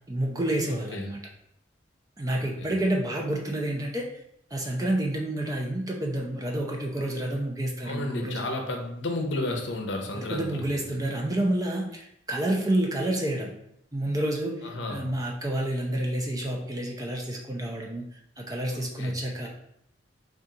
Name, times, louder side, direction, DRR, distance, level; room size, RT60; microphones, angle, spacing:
voice 1, 0.1-1.2 2.2-4.0 4.5-8.4 10.2-13.5 13.9-18.0 18.4-19.5, right 1 dB, 20° right, 0 dB, 0.5 m, -29 dB
voice 2, 0.7-1.1 2.3-2.7 7.8-10.6 14.6-15.0 18.7-19.2, left 2 dB, 80° left, 2 dB, 0.7 m, -33 dB
4.2 x 2.4 x 3.7 m, 0.76 s
head